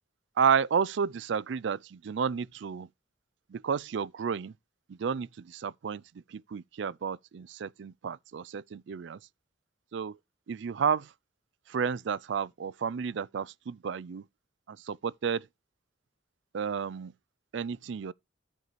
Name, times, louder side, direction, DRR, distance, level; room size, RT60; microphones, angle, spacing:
voice 1, 0.4-2.9 3.5-4.5 4.9-6.0 6.3-9.2 9.9-10.1 10.5-11.1 11.7-14.2 14.7-15.5 16.5-17.1 17.5-18.1, right 6 dB, 65° right, 0.4 m, -31 dB
13.5 x 5.4 x 3.1 m
head